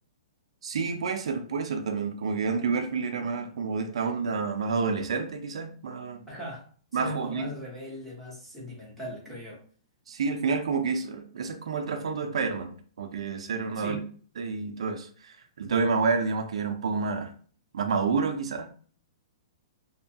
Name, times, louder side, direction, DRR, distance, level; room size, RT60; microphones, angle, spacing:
voice 1, 0.6-6.2 6.9-7.5 10.1-14.0 14.4-17.3 17.7-18.7, right 4 dB, 70° right, 6 dB, 0.4 m, -29 dB
voice 2, 6.3-6.7 7.0-9.6 13.7-14.1, equal, ahead, -7 dB, 0.8 m, -39 dB
2.7 x 2.2 x 2.7 m, 0.44 s
hypercardioid pair, 175°, 3 cm